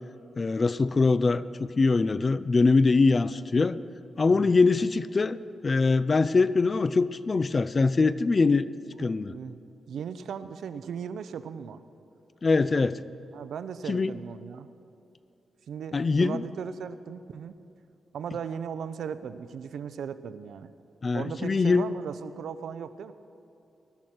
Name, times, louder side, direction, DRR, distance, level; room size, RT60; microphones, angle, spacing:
voice 1, 0.4-3.8 4.2-5.4 5.6-8.7 9.0-9.3 12.4-13.0 13.9-14.2 15.9-16.4 21.0-21.9, left 3 dB, 30° left, 16 dB, 0.3 m, -23 dB
voice 2, 9.0-9.6 9.9-11.8 13.3-14.7 15.7-17.6 18.1-20.7 21.1-23.1, right 7 dB, 80° right, 13 dB, 0.6 m, -37 dB
19.5 x 12.5 x 4.4 m, 2.8 s
wide cardioid pair, 135°, 0 cm